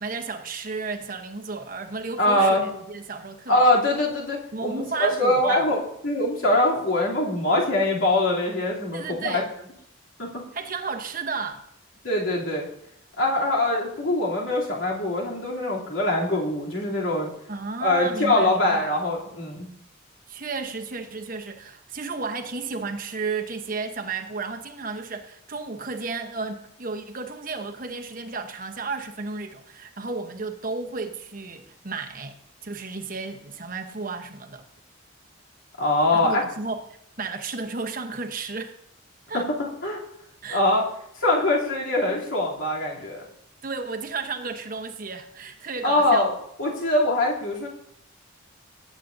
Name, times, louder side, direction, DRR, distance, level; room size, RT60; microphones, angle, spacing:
voice 1, 0.0-3.7 4.5-5.7 8.9-9.5 10.5-11.6 17.5-18.9 20.3-34.6 36.1-36.8 37.2-38.7 39.3-39.5 40.4-40.6 43.6-46.3, right 4 dB, 40° right, 1.0 m, -33 dB
voice 2, 2.2-2.7 3.5-9.4 10.2-10.4 12.0-12.7 13.2-17.3 17.8-19.7 35.8-36.4 39.3-40.0 40.5-40.8 41.2-43.2 45.8-46.3 46.6-47.7, left 1 dB, 75° left, 3.1 m, -23 dB
18.5 x 8.4 x 2.7 m
head